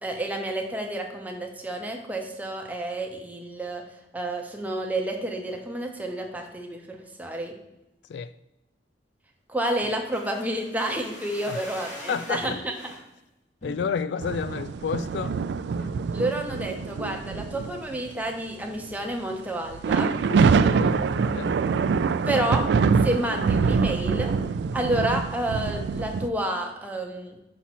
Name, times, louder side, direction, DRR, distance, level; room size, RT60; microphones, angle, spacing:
voice 1, 0.0-3.8 4.1-7.6 9.5-12.8 16.1-20.1 22.3-22.7 23.0-24.3 24.7-27.4, right 1 dB, 10° right, 0.9 m, -30 dB
sound 1, 9.8-13.0 13.6-14.2 14.6-14.7 15.0-15.3 15.8-16.1 16.6-17.3 17.5-17.6, equal, 40° left, 2.1 m, -43 dB
voice 2, 12.1-12.6 13.6-15.4 20.3-21.5, left 6 dB, 70° left, 0.3 m, -31 dB
sound 2, 14.2-18.1 18.8-18.9 19.6-26.3, right 5 dB, 65° right, 0.3 m, -24 dB
6.0 x 5.6 x 4.2 m
head